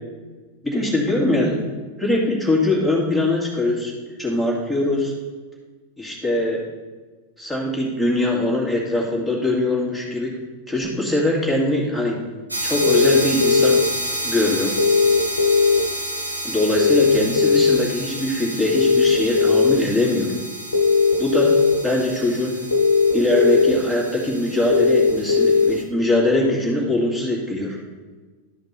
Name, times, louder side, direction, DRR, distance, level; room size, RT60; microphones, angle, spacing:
voice 1, 0.6-1.6 2.0-3.9 4.2-5.1 6.0-6.6 7.4-10.3 10.7-12.2 12.6-13.8 14.2-14.7 16.4-20.3 21.2-21.6 21.8-22.5 23.1-27.8, left 2 dB, 5° right, -4 dB, 2.3 m, -22 dB
sound 1, 12.5-25.8, right 1 dB, 85° right, 0.9 m, -30 dB
sound 2, 12.8-13.8 14.8-15.8 16.8-17.8 18.7-19.8 20.7-21.7 22.7-23.7 24.7-25.7, left 5 dB, 80° left, 1.0 m, -17 dB
12.0 x 5.2 x 4.2 m, 1.3 s
figure-of-eight pair, 90°, 0 cm